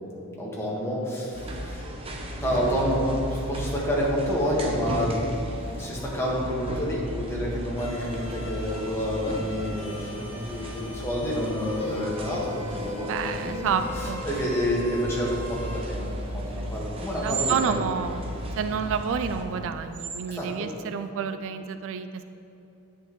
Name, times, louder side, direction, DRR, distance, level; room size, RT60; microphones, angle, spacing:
voice 1, 0.1-1.9 2.4-5.3 5.8-13.6 14.2-17.8 20.3-20.7, equal, 10° left, -5 dB, 1.5 m, -29 dB
sound 1, 1.3-19.4, equal, 25° right, 0.7 m, -35 dB
sound 2, 7.8-15.8, left 2 dB, 30° left, 1.7 m, -40 dB
voice 2, 13.0-14.2 17.2-22.2, right 6 dB, 60° right, 10 dB, 0.3 m, -29 dB
sound 3, 15.1-21.1, right 6 dB, 90° right, 0.7 m, -39 dB
9.8 x 8.3 x 3.1 m, 2.9 s
head